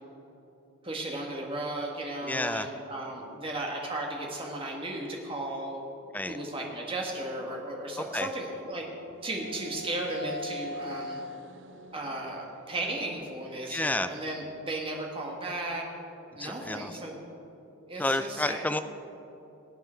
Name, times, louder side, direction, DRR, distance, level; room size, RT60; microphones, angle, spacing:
voice 1, 0.8-5.8 6.3-8.9 9.2-11.2 11.9-15.9 16.4-17.2 17.9-18.8, right 1 dB, 25° right, -1 dB, 1.7 m, -35 dB
voice 2, 2.2-2.7 6.1-6.4 8.1-8.3 13.7-14.1 16.4-16.9 18.0-18.8, left 2 dB, 5° left, 10 dB, 0.3 m, -30 dB
sound 1, 8.8-13.9, equal, 55° right, 0.6 m, -43 dB
18.0 x 8.8 x 4.5 m, 2.9 s
head